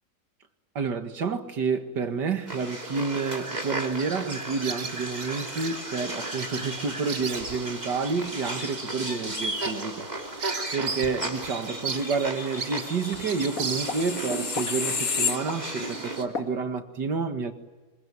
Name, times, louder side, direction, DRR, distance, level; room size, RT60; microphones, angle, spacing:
voice 1, 0.8-10.1 10.7-17.5, right 4 dB, 85° right, 2.6 m, -29 dB
sound 1, 2.5-16.2, right 2 dB, 25° right, 3.0 m, -35 dB
Bird vocalization bird call bird song, 4.6-5.8 6.4-6.7 6.9-7.7 8.2-8.4 8.9-9.0 9.3-11.2 11.4-11.5 11.8-14.3, right 5 dB, 50° right, 1.9 m, -35 dB
sound 2, 13.0-16.0 16.3-16.5, left 5 dB, 55° left, 2.2 m, -31 dB
26.5 x 24.0 x 9.3 m
omnidirectional pair, 1.8 m